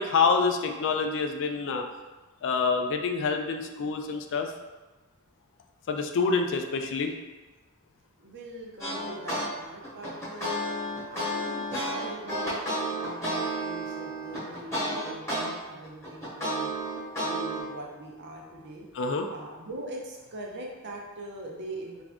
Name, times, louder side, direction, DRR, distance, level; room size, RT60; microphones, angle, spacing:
voice 1, 0.0-1.8 2.4-4.5 5.9-7.1 18.9-19.3, left 4 dB, 55° left, 4 dB, 0.4 m, -27 dB
voice 2, 8.2-10.7 11.1-16.7 17.2-18.9 19.3-22.0, right 1 dB, 50° right, -1 dB, 0.7 m, -42 dB
sound 1, 8.8-9.5 9.8-15.5 15.8-17.6, right 1 dB, 10° left, 1.1 m, -31 dB
3.4 x 2.5 x 3.4 m, 1.2 s
head